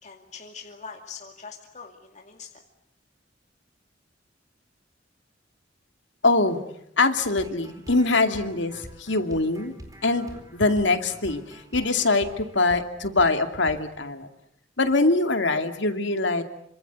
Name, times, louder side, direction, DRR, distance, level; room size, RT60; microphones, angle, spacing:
voice 1, 0.0-2.6, left 5 dB, 40° left, 3 dB, 2.4 m, -43 dB
voice 2, 6.2-6.6 7.0-9.7 10.0-10.3 10.5-14.3 14.8-16.4, left 3 dB, 70° left, 7 dB, 2.5 m, -23 dB
sound 1, 7.3-12.9 13.2-13.3 13.7-13.8, equal, 20° right, 4.3 m, -45 dB
26.5 x 25.5 x 8.3 m, 0.74 s
head